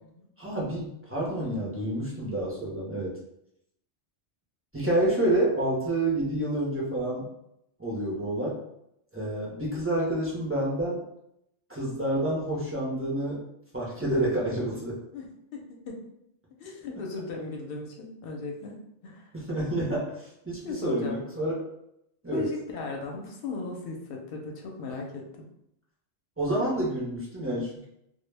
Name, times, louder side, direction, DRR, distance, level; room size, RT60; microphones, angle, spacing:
voice 1, 0.4-3.2 4.7-7.3 7.8-8.6 9.1-11.0 11.7-13.4 13.7-15.0 19.3-21.5 22.2-22.5 26.4-27.9, right 1 dB, 25° right, -6 dB, 0.3 m, -28 dB
voice 2, 15.1-16.0 16.6-18.8 19.0-19.3 20.6-21.1 22.3-25.5, left 3 dB, 65° left, 1 dB, 0.7 m, -37 dB
2.0 x 2.0 x 3.2 m, 0.78 s
omnidirectional pair, 1.2 m